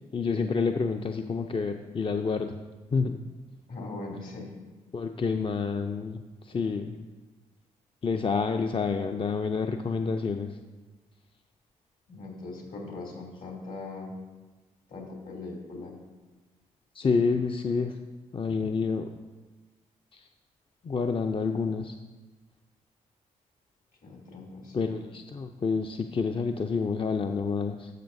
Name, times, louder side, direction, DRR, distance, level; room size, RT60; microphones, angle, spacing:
voice 1, 0.1-2.6 2.9-3.2 4.9-6.2 6.4-7.0 8.0-10.5 16.9-17.9 18.3-19.1 20.1-20.2 20.8-22.0 24.7-27.9, left 5 dB, 30° left, 6 dB, 0.5 m, -28 dB
voice 2, 3.7-4.5 12.1-14.1 14.9-16.0 24.0-25.0, left 3 dB, 60° left, -1 dB, 2.7 m, -40 dB
12.0 x 7.3 x 2.7 m, 1.3 s
hypercardioid pair, 45°, 17 cm